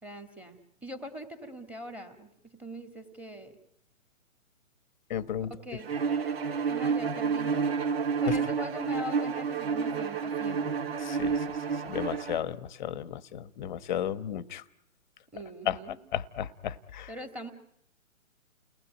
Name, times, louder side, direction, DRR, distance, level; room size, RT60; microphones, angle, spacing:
voice 1, 0.0-3.5 5.5-5.9 6.7-7.6 8.2-10.8 15.3-16.0 17.1-17.5, equal, 5° right, 7 dB, 2.2 m, -42 dB
voice 2, 5.1-5.5 11.1-11.3 11.9-14.6 15.7-15.8 16.1-17.1, left 10 dB, 35° left, 15 dB, 1.3 m, -33 dB
Bowed string instrument, 5.9-12.4, right 5 dB, 45° right, 2.1 m, -30 dB
30.0 x 19.5 x 9.3 m, 0.78 s
hypercardioid pair, 150°, 41 cm